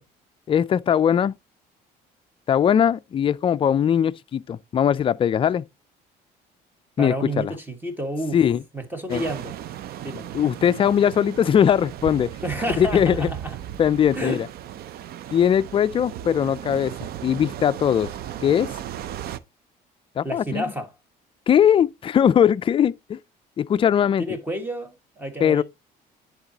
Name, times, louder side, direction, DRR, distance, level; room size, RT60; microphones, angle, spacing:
voice 1, 0.5-1.3 2.5-5.7 7.0-7.5 8.3-8.6 9.1-9.2 10.3-12.3 12.8-13.3 13.8-14.5 15.3-18.1 18.4-18.7 20.2-20.6 21.5-23.2 23.6-24.2 25.4-25.6, left 9 dB, 30° left, 0.4 m, -20 dB
voice 2, 7.0-8.4 8.7-9.5 10.0-10.3 12.4-13.6 14.1-14.4 20.2-20.9 24.2-25.6, right 1 dB, 10° right, 1.6 m, -30 dB
sound 1, 9.1-19.4, right 11 dB, 65° right, 0.5 m, -36 dB
10.5 x 4.0 x 2.8 m
cardioid pair, 110°, 17 cm